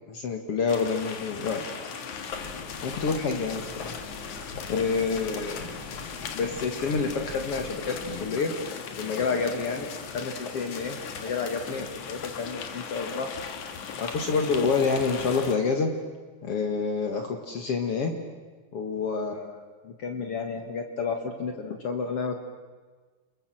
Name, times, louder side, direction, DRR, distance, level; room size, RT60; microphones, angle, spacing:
voice 1, 0.1-1.6 2.8-4.0 4.7-5.6 6.3-8.5 9.0-9.9 10.1-13.3 14.0-15.9 16.4-18.1 18.7-22.5, left 4 dB, 55° left, 4 dB, 2.5 m, -28 dB
sound 1, 0.7-15.6, left 6 dB, 85° left, 3.3 m, -38 dB
sound 2, 2.3-8.2, left 2 dB, 35° left, 3.8 m, -44 dB
29.5 x 22.0 x 7.7 m, 1.4 s
omnidirectional pair, 3.3 m